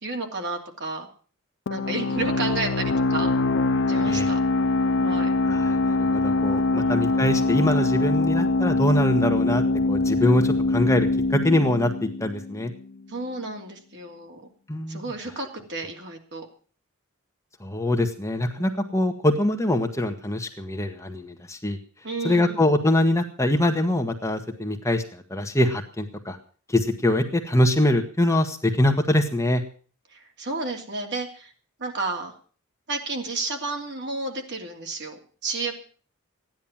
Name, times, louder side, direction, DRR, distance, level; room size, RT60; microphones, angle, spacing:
voice 1, 0.0-1.1 1.7-3.3 3.9-4.4 5.0-5.3 6.8-7.1 13.1-14.5 14.9-16.5 18.6-19.0 22.0-22.6 30.1-31.5 31.8-32.3 32.9-35.7, right 3 dB, 55° right, 3 dB, 2.9 m, -32 dB
sound 1, 1.7-13.0, left 2 dB, 55° left, 0.7 m, -23 dB
voice 2, 5.5-12.7 14.7-15.0 17.6-21.8 22.2-25.0 25.3-26.4 26.7-29.6, left 1 dB, 15° left, 4 dB, 1.4 m, -23 dB
15.0 x 10.5 x 7.3 m, 0.41 s
head